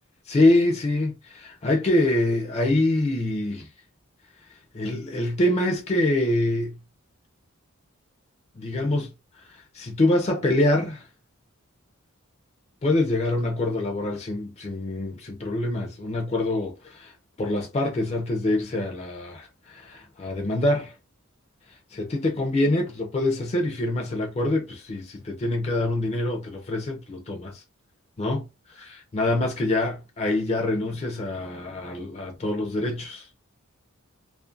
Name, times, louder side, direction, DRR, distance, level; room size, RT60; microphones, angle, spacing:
voice 1, 0.3-3.7 4.7-6.8 8.6-9.1 9.4-11.1 12.8-20.9 21.9-27.6 28.2-33.3, left 1 dB, 30° left, 0.4 m, -25 dB
2.4 x 2.1 x 2.5 m
head